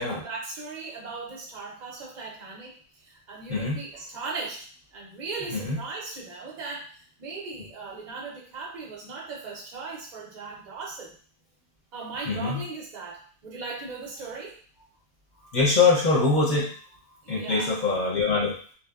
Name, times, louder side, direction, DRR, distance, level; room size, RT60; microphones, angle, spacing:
voice 1, 0.0-11.2 11.9-14.6 17.2-17.7, right 4 dB, 50° right, -2 dB, 0.6 m, -38 dB
voice 2, 3.5-3.8 5.5-5.8 12.3-12.6 15.4-16.7 17.3-18.5, left 3 dB, 50° left, -5 dB, 0.8 m, -23 dB
2.8 x 2.0 x 2.2 m, 0.43 s
omnidirectional pair, 1.1 m